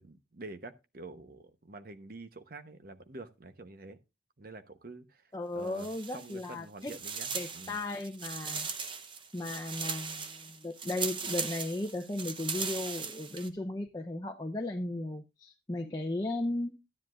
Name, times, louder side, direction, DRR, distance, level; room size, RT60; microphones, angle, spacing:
voice 1, 0.0-4.0 4.4-7.8, right 2 dB, 50° right, 1.0 m, -47 dB
voice 2, 5.3-6.9 7.3-8.7 9.3-16.7, left 2 dB, 20° left, 0.7 m, -36 dB
sound 1, 5.7-6.5 6.8-13.5, right 5 dB, 25° right, 0.8 m, -38 dB
13.0 x 10.0 x 2.5 m
head